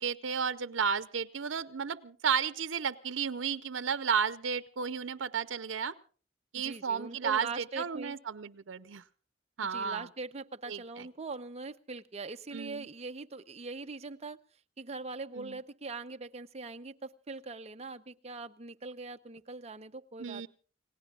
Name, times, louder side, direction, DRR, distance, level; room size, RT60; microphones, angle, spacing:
voice 1, 0.0-5.9 6.5-9.0 9.6-10.1 10.7-11.1 12.5-12.9 15.4-15.6 20.2-20.5, right 6 dB, 90° right, 13 dB, 0.6 m, -33 dB
voice 2, 6.6-8.2 9.7-14.4 14.8-20.5, right 3 dB, 35° right, 7 dB, 0.7 m, -42 dB
30.0 x 17.5 x 2.4 m, 0.41 s
head